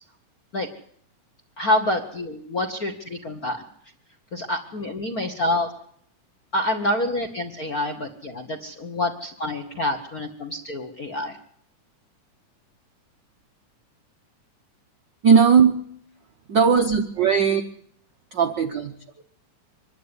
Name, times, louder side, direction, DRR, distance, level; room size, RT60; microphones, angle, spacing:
voice 1, 1.6-3.6 4.3-5.7 6.5-11.4, left 1 dB, 55° left, 6 dB, 1.0 m, -27 dB
voice 2, 15.2-15.7 16.5-17.6 18.3-19.2, right 6 dB, 80° right, 6 dB, 1.0 m, -18 dB
24.5 x 11.0 x 9.6 m, 0.66 s
omnidirectional pair, 3.5 m